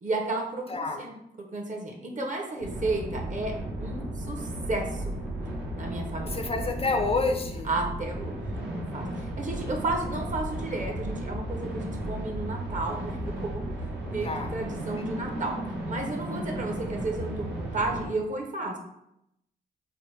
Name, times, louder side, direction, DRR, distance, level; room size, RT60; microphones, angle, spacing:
voice 1, 0.0-3.5 3.8-5.1 5.8-6.4 7.6-8.4 8.7-13.6 14.1-15.5 15.9-18.8, right 2 dB, 45° right, 2 dB, 0.7 m, -33 dB
voice 2, 0.7-1.1 6.3-7.7 14.2-14.5 15.0-15.1, left 3 dB, 35° left, 5 dB, 0.4 m, -28 dB
sound 1, 2.6-18.1, right 1 dB, 75° right, 0.8 m, -34 dB
2.9 x 2.1 x 3.3 m, 0.81 s
supercardioid pair, 50°, 18 cm